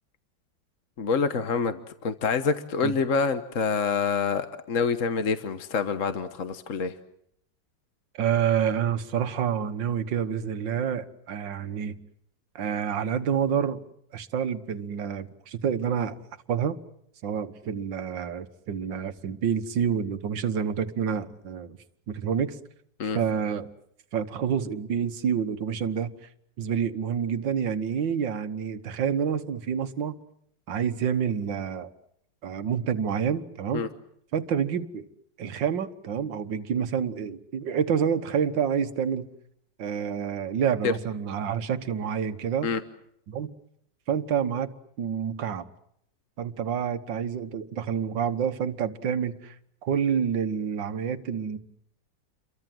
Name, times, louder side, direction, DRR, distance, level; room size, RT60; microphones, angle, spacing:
voice 1, 1.0-6.9 23.0-23.2 33.7-33.9 40.8-40.9 42.6-42.8, left 5 dB, 50° left, 1.5 m, -26 dB
voice 2, 8.1-11.9 12.6-13.8 14.1-16.2 16.5-16.8 17.2-21.8 22.1-22.6 23.1-23.7 24.1-26.1 26.6-30.2 30.7-31.9 32.4-33.9 34.3-35.1 35.4-39.3 39.8-42.7 43.3-43.5 44.1-44.7 45.0-45.6 46.4-49.6 49.8-51.6, right 7 dB, 85° right, 2.0 m, -28 dB
29.5 x 23.5 x 7.7 m
omnidirectional pair, 2.0 m